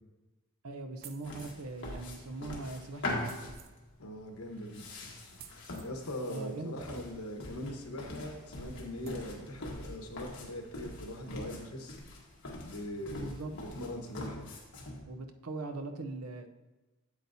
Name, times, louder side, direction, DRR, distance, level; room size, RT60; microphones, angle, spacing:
voice 1, 0.6-3.5 6.3-7.0 13.1-13.5 15.1-16.5, right 2 dB, 90° right, 7 dB, 0.7 m, -41 dB
sound 1, 1.0-1.7 3.2-3.7 5.4-5.9 7.8-7.9 8.4-8.5 9.0-9.3, right 8 dB, 45° right, 0.5 m, -53 dB
sound 2, 1.2-15.0, left 1 dB, 60° left, 1.4 m, -43 dB
voice 2, 4.0-4.8 5.8-12.0 12.6-14.4, left 1 dB, 80° left, 3 dB, 1.1 m, -41 dB
8.3 x 8.2 x 2.7 m, 1.2 s
head